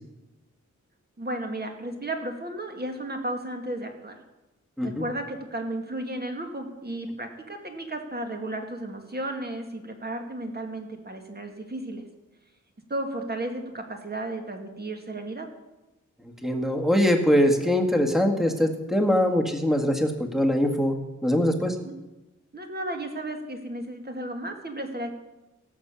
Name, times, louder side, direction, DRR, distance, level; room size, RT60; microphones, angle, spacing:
voice 1, 1.2-4.2 4.8-12.0 12.9-15.5 21.8-22.0 22.5-25.1, right 1 dB, 30° right, 4 dB, 2.1 m, -34 dB
voice 2, 16.4-21.7, equal, ahead, 4 dB, 1.8 m, -23 dB
16.5 x 7.3 x 6.9 m, 1.0 s
wide cardioid pair, 95°, 31 cm